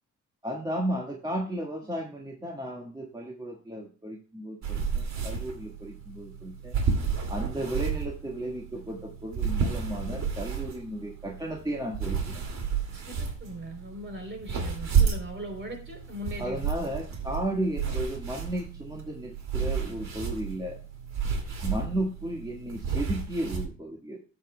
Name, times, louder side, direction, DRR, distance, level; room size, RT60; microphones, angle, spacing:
voice 1, 0.4-6.7 7.3-12.4 16.4-20.8 21.6-24.2, right 1 dB, 15° right, -1 dB, 1.7 m, -34 dB
sound 1, 4.6-23.6, right 6 dB, 65° right, 2.3 m, -31 dB
voice 2, 12.9-16.9, equal, 40° right, 4 dB, 3.4 m, -40 dB
13.5 x 8.8 x 2.2 m, 0.36 s
cardioid pair, 90°, 30 cm